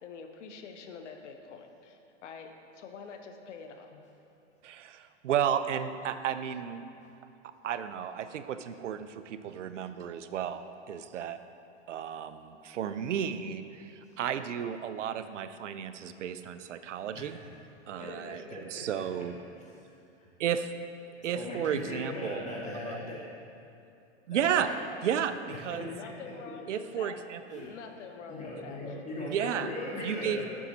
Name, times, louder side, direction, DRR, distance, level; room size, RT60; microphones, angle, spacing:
voice 1, 0.0-4.1 25.7-27.2 27.5-29.0, left 5 dB, 75° left, 5 dB, 0.8 m, -46 dB
voice 2, 4.6-6.8 7.4-11.4 11.9-17.4 17.9-19.3 20.4-20.7 21.2-22.5 22.9-23.0 24.3-24.7 25.0-25.4 25.6-25.9 26.7-27.7 29.3-29.7 30.0-30.5, right 9 dB, 90° right, 11 dB, 0.5 m, -33 dB
voice 3, 18.0-19.3 20.2-20.3 21.2-23.3 24.3-24.7 25.5-26.1 27.5-27.7 28.3-30.5, left 1 dB, 20° left, -5 dB, 1.8 m, -39 dB
7.3 x 6.0 x 4.0 m, 2.7 s
hypercardioid pair, 115°, 36 cm